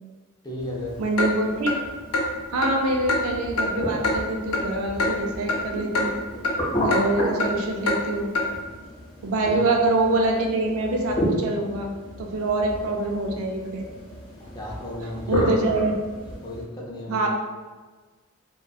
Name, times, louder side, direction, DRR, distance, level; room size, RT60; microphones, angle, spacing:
voice 1, 0.4-1.0 9.4-9.6 14.5-15.6 16.4-17.3, left 1 dB, 20° left, -4 dB, 0.5 m, -34 dB
sound 1, 0.6-16.6, equal, 40° left, 0.9 m, -32 dB
voice 2, 1.0-1.7 2.5-6.2 6.8-8.3 9.2-13.9 15.3-15.9 17.1-17.3, right 2 dB, 75° right, 2 dB, 0.4 m, -25 dB
Clock, 1.2-1.3 1.7-1.8 2.1-2.3 2.6-2.7 3.1-3.2 3.6-3.7 4.0-4.2 4.5-4.6 5.0-5.1 5.5-5.6 5.9-6.1 6.4-6.6 6.9-7.0 7.4-7.5 7.9-8.0 8.3-8.5, left 2 dB, 85° left, 0.4 m, -23 dB
2.5 x 2.2 x 2.3 m, 1.3 s
head